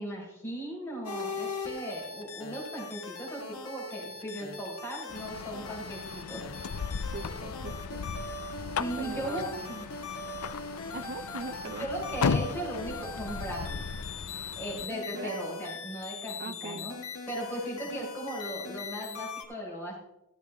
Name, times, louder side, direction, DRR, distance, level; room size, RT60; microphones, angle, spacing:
voice 1, 0.0-6.4 8.8-9.9 11.8-13.8 14.5-17.0 17.3-20.0, right 1 dB, 10° left, -5 dB, 4.6 m, -37 dB
sound 1, 1.0-19.4, left 4 dB, 70° left, 1.7 m, -41 dB
sound 2, 5.1-14.9, left 5 dB, 90° left, 0.5 m, -36 dB
voice 2, 7.1-8.4 9.0-9.8 10.9-11.9 15.1-15.7 16.4-16.9, right 4 dB, 50° right, 13 dB, 0.6 m, -41 dB
13.5 x 9.0 x 3.4 m, 0.87 s
head